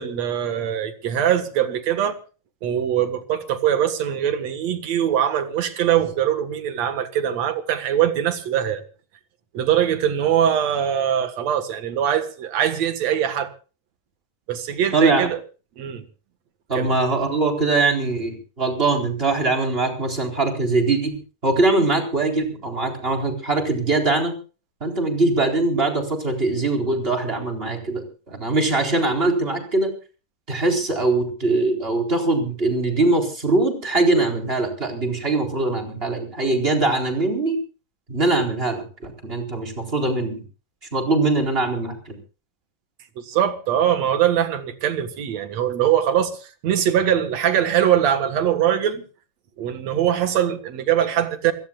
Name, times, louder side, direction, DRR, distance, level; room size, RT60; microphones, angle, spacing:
voice 1, 0.0-2.2 2.6-8.8 9.5-13.5 14.5-15.4 15.8-16.0 16.8-16.9 43.2-49.0 49.6-51.5, right 10 dB, 60° right, 2.6 m, -22 dB
voice 2, 14.9-15.3 16.7-21.2 21.4-24.3 24.8-29.9 30.5-37.6 38.1-40.4 40.9-42.2, right 3 dB, 15° right, 4.1 m, -22 dB
28.0 x 17.0 x 2.4 m
omnidirectional pair, 3.8 m